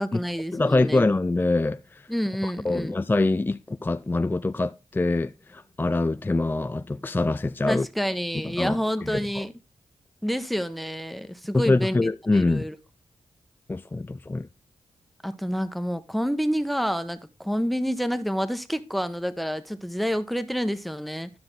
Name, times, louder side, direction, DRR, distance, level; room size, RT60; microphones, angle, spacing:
voice 1, 0.0-1.0 2.1-2.9 7.7-9.5 10.2-12.0 12.3-12.8 15.2-21.3, equal, ahead, 1.1 m, -28 dB
voice 2, 0.5-2.1 2.4-7.9 8.4-9.4 11.5-12.7 13.7-14.5, left 2 dB, 15° left, 0.4 m, -25 dB
12.5 x 5.8 x 3.8 m
cardioid pair, 60°, 12 cm